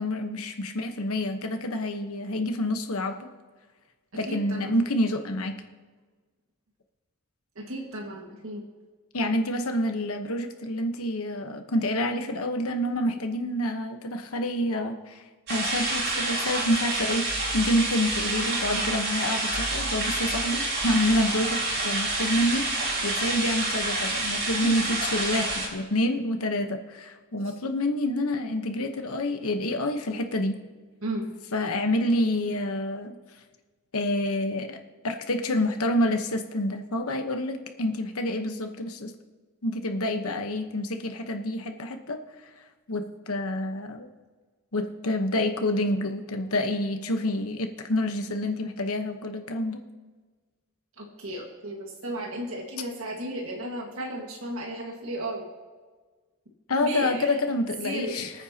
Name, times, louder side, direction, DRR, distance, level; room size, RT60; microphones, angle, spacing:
voice 1, 0.0-3.3 4.1-5.6 9.1-15.2 15.5-30.6 31.5-33.1 33.9-34.8 35.0-39.1 39.6-42.2 42.9-44.1 44.7-49.8 56.7-58.3, left 1 dB, 80° left, 6 dB, 1.1 m, -28 dB
voice 2, 4.3-4.8 7.5-8.6 24.6-24.8 31.0-31.3 39.9-40.0 51.0-55.4 56.8-57.4 57.8-58.2, right 1 dB, 70° right, -1 dB, 1.8 m, -34 dB
sound 1, 15.5-25.7, right 2 dB, 50° right, 4.3 m, -28 dB
25.5 x 9.1 x 2.9 m, 1.4 s
head